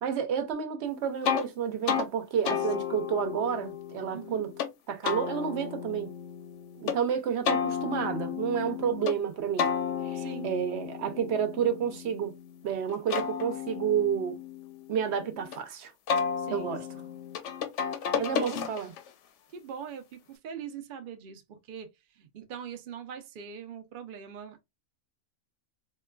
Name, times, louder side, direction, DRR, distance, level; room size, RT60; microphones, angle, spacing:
voice 1, 0.0-4.5 4.9-6.1 6.8-9.7 10.0-12.3 12.6-14.4 14.9-15.9 16.5-16.9 18.1-18.9, right 8 dB, 60° right, 0.7 m, -30 dB
sound 1, 1.2-1.5 1.9-2.1 2.5-4.7 5.0-7.0 7.5-9.2 9.6-12.5 12.9-15.6 16.1-19.1, left 7 dB, 65° left, 0.7 m, -33 dB
voice 2, 4.1-4.5 10.1-10.5 16.4-16.7 18.2-18.6 19.5-21.9 22.2-24.6, right 8 dB, 85° right, 0.4 m, -42 dB
3.7 x 2.2 x 2.2 m
omnidirectional pair, 1.6 m